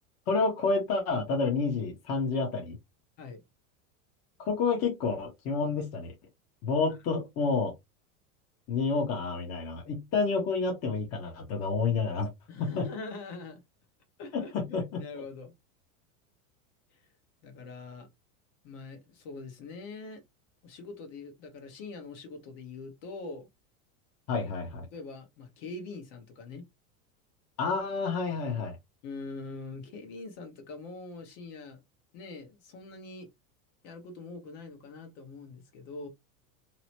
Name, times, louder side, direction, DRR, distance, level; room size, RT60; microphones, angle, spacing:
voice 1, 0.3-2.8 4.4-6.1 6.6-7.7 8.7-12.3 12.6-12.9 14.3-15.2 24.3-24.9 27.6-28.8, left 4 dB, 35° left, 0.9 m, -29 dB
voice 2, 12.5-13.6 14.2-14.5 15.0-15.5 17.4-18.1 18.6-20.2 20.6-23.5 24.9-26.6 29.0-31.8 32.1-33.3 33.8-36.1, left 3 dB, 55° left, 1.1 m, -43 dB
3.0 x 2.0 x 2.8 m
supercardioid pair, 125°, 42 cm